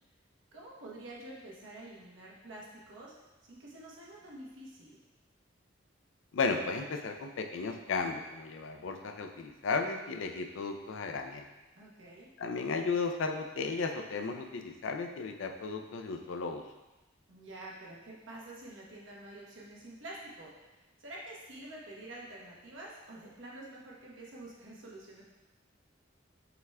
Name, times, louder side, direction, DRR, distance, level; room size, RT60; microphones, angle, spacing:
voice 1, 0.5-3.1 3.5-5.0 11.7-12.3 17.3-25.2, right 1 dB, 80° right, -4 dB, 1.0 m, -48 dB
voice 2, 6.3-11.5 12.4-16.6, left 4 dB, 85° left, 5 dB, 0.4 m, -34 dB
5.7 x 3.5 x 2.2 m, 1.1 s
head